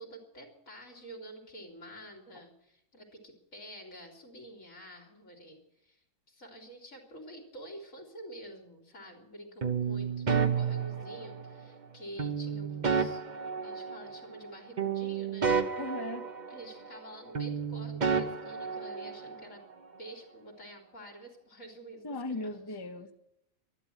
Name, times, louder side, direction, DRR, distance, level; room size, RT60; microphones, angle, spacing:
voice 1, 0.0-6.0 6.3-13.2 13.6-15.5 16.5-19.6 20.0-22.5, right 1 dB, 75° left, 1 dB, 3.3 m, -48 dB
sound 1, 9.6-11.6 12.2-14.5 14.8-17.1 17.3-19.4, right 6 dB, 35° right, 1.0 m, -31 dB
voice 2, 15.8-16.3 22.0-23.1, left 2 dB, 20° left, 7 dB, 0.9 m, -37 dB
12.5 x 11.5 x 9.1 m, 0.80 s
omnidirectional pair, 1.4 m